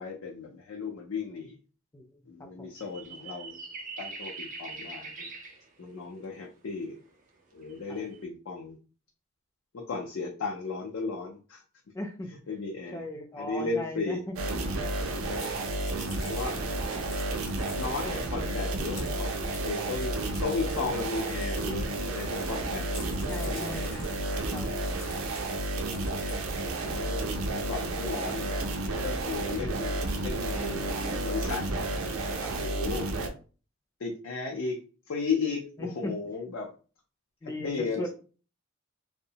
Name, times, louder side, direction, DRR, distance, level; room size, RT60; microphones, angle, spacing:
voice 1, 0.0-1.5 2.3-3.6 4.0-5.3 5.8-7.0 7.5-8.8 9.7-11.6 12.5-13.0 13.4-14.2 15.2-15.5 16.2-16.7 17.8-19.3 19.6-20.1 20.4-24.5 25.8-26.0 26.9-31.7 32.5-33.1 34.0-34.8 35.1-36.7 37.6-38.1, left 4 dB, 70° left, 0 dB, 0.5 m, -35 dB
sound 1, 2.8-5.7 7.1-7.2 7.6-8.2, right 3 dB, 40° right, 0.5 m, -42 dB
voice 2, 11.9-12.3 12.9-14.3 23.3-24.0 24.5-24.7 32.4-32.6 35.8-36.1 37.4-38.1, left 1 dB, 15° left, 4 dB, 0.4 m, -37 dB
sound 2, 14.4-33.3, right 2 dB, 90° right, 0.5 m, -31 dB
Crunching Leaves, 15.3-22.6 22.9-26.9, left 4 dB, 55° left, 0.8 m, -50 dB
2.7 x 2.1 x 2.7 m, 0.37 s
head